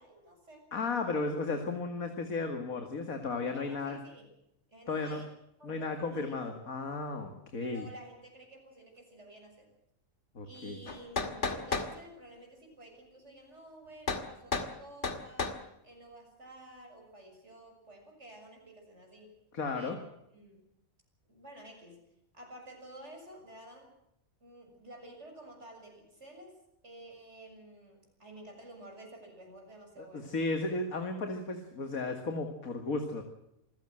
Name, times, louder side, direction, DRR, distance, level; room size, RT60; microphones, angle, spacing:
voice 1, 0.0-0.6 3.5-4.3 4.7-5.3 5.6-6.6 7.6-9.7 10.4-15.6 15.8-19.4 19.7-20.0 20.3-20.6 21.3-22.0 22.3-23.9 24.4-26.6 26.8-30.4, right 1 dB, 50° right, 3 dB, 7.2 m, -51 dB
voice 2, 0.7-4.0 4.9-5.2 5.6-7.8 10.3-10.8 19.5-20.0 30.0-33.2, left 3 dB, 75° left, 6 dB, 2.5 m, -34 dB
sound 1, 10.9-11.9 14.1-14.3 14.5-14.7 15.0-15.6, left 4 dB, 55° left, 2.3 m, -32 dB
27.0 x 16.0 x 7.8 m, 0.83 s
omnidirectional pair, 1.5 m